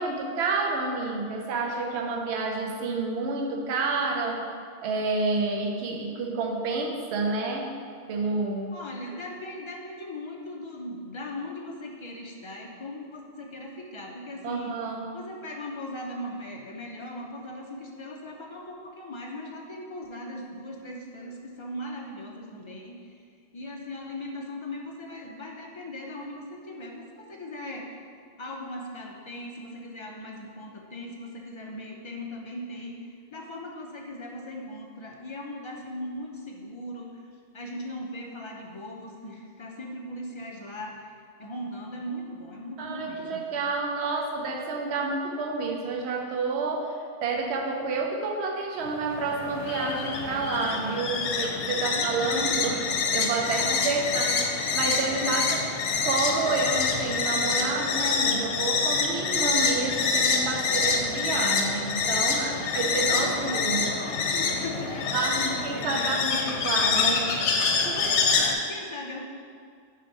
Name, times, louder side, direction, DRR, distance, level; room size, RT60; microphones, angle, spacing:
voice 1, 0.0-4.4 4.8-7.7 8.1-8.7 14.4-15.1 42.8-46.9 47.2-54.3 54.7-55.4 56.0-63.8 65.1-67.2 67.7-68.1, right 3 dB, 70° right, 1 dB, 1.0 m, -29 dB
voice 2, 8.7-14.8 15.1-23.2 23.5-28.0 28.4-43.4 51.6-52.6 53.4-54.6 54.9-55.5 62.4-67.2 68.0-69.2, left 1 dB, 35° left, -1 dB, 0.5 m, -39 dB
sound 1, 48.8-68.6, left 5 dB, 90° left, 0.9 m, -26 dB
6.4 x 2.9 x 5.2 m, 2.2 s
omnidirectional pair, 1.2 m